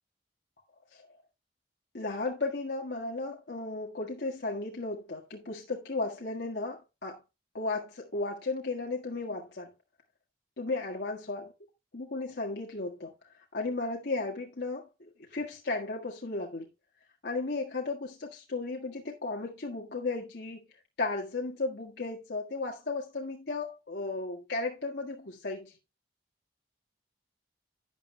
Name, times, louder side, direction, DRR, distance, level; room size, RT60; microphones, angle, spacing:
voice 1, 1.9-7.2 7.5-9.7 10.6-11.5 11.9-13.1 13.5-16.7 17.2-20.6 21.0-25.8, left 3 dB, 70° left, 1.7 m, -35 dB
12.5 x 9.3 x 2.2 m
head